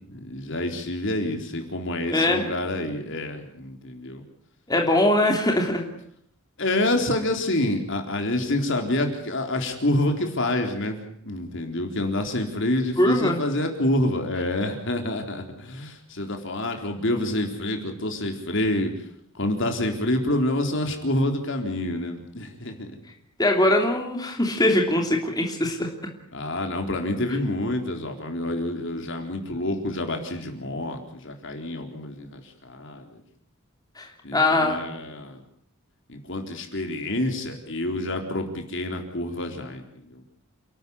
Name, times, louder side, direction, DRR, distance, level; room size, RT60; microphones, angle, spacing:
voice 1, 0.1-4.2 6.6-11.0 11.2-19.1 19.3-23.0 26.3-33.2 34.2-35.4 36.1-40.2, left 1 dB, 60° left, 4 dB, 4.0 m, -27 dB
voice 2, 2.1-2.5 4.7-5.8 13.0-13.4 23.4-25.9 34.0-34.8, left 1 dB, 20° left, 2 dB, 3.1 m, -22 dB
29.5 x 13.0 x 9.7 m, 0.69 s
head